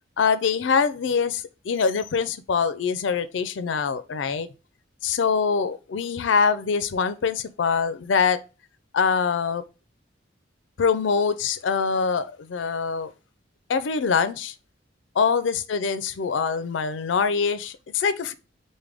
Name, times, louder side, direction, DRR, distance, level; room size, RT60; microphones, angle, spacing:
voice 1, 0.2-4.5 5.0-8.4 8.9-9.6 10.8-13.1 13.7-14.5 15.2-18.3, left 5 dB, 85° left, 0.4 m, -24 dB
4.8 x 2.2 x 3.4 m
head